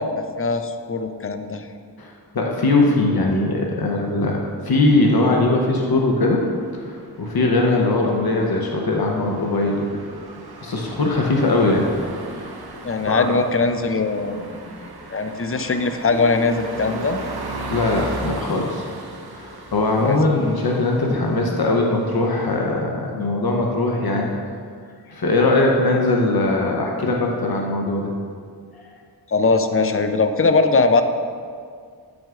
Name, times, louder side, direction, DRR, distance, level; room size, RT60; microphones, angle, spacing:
voice 1, 0.0-1.7 12.8-14.8 15.1-17.2 20.0-20.2 29.3-31.0, left 3 dB, 35° left, 7 dB, 0.5 m, -21 dB
voice 2, 2.0-4.4 4.6-6.4 6.8-9.9 10.6-11.9 13.1-13.3 17.7-18.8 19.3-24.3 25.1-28.1, left 2 dB, 70° left, 0 dB, 0.8 m, -20 dB
sound 1, 4.5-22.6, right 2 dB, 75° right, 0.8 m, -37 dB
8.8 x 6.0 x 2.4 m, 2.1 s
cardioid pair, 40°, 39 cm